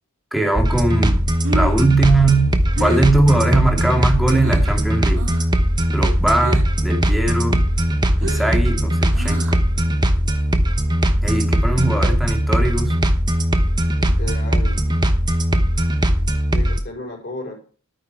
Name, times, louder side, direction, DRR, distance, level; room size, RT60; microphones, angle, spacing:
voice 1, 0.3-1.2 1.5-5.3 5.9-7.7 8.2-9.4 11.2-13.0, right 2 dB, ahead, 1 dB, 2.1 m, -20 dB
sound 1, 0.6-16.8, equal, 20° right, 0.9 m, -19 dB
Breathing, 1.2-4.8 5.1-5.6 5.8-6.9 7.2-9.8, right 3 dB, 60° right, 2.0 m, -32 dB
voice 2, 14.0-14.8 16.5-17.5, left 2 dB, 50° left, 1 dB, 4.5 m, -33 dB
12.0 x 9.1 x 4.6 m, 0.41 s
head